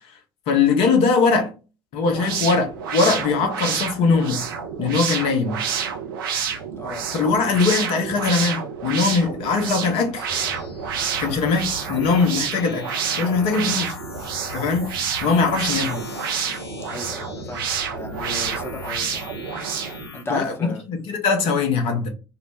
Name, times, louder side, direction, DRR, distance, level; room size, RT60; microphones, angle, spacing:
voice 1, 0.5-1.5 1.9-4.4 4.8-5.6 7.1-10.3 11.1-12.9 13.2-13.9 14.5-14.8 15.2-16.0 20.3-20.5 20.9-22.1, left 4 dB, 50° left, 0.8 m, -21 dB
sound 1, 2.0-20.1, right 7 dB, 70° right, 0.5 m, -29 dB
voice 2, 6.7-7.6 16.9-19.2 20.1-20.8, left 2 dB, 20° left, 0.8 m, -35 dB
sound 2, 10.3-20.2, left 4 dB, 80° left, 0.5 m, -38 dB
2.6 x 2.0 x 3.1 m
figure-of-eight pair, 65°, 12 cm